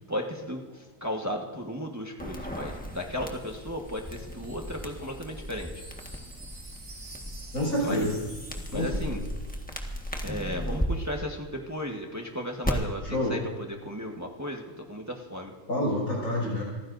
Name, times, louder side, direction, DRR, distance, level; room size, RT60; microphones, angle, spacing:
voice 1, 0.1-5.7 7.8-8.1 8.7-9.2 10.2-13.4 13.8-15.5, equal, 10° right, 1 dB, 1.3 m, -35 dB
sound 1, 2.2-10.9 12.6-12.7, equal, 5° left, 1.4 m, -36 dB
Wind chime, 2.5-9.8 10.0-10.2, right 2 dB, 60° right, 3.5 m, -50 dB
voice 2, 7.5-8.2 8.7-9.3 13.0-13.4 15.7-16.6, left 1 dB, 85° left, -4 dB, 6.9 m, -28 dB
27.5 x 15.0 x 2.7 m, 1.4 s
omnidirectional pair, 1.5 m